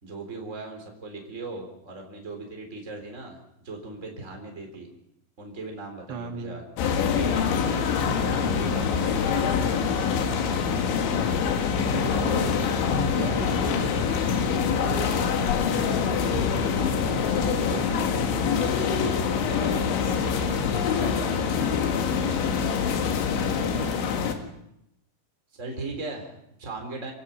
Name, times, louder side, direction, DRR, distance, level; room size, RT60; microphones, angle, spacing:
voice 1, 0.0-4.9 5.4-6.6 7.0-7.9 8.2-9.8 18.7-18.9 19.5-22.1 22.4-23.0 23.3-24.1 25.6-27.1, right 3 dB, 15° right, 2 dB, 3.6 m, -39 dB
voice 2, 6.1-6.6 11.7-12.5 12.9-15.3 15.6-18.6, right 6 dB, 85° right, 4 dB, 4.3 m, -37 dB
sound 1, 6.8-24.3, left 6 dB, 90° left, 4.2 m, -25 dB
27.0 x 16.5 x 5.7 m, 0.78 s
omnidirectional pair, 5.2 m